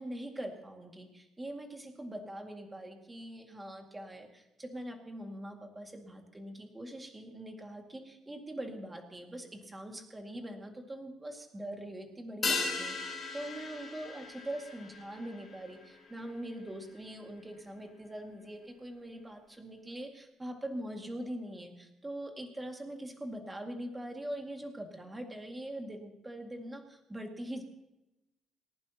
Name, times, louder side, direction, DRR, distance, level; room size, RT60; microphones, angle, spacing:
voice 1, 0.0-27.6, right 1 dB, 10° right, 3 dB, 2.1 m, -43 dB
sound 1, 12.4-17.1 17.4-17.5, left 3 dB, 25° left, 3.7 m, -38 dB
29.0 x 11.5 x 2.9 m, 0.95 s
cardioid pair, 150°, 0 cm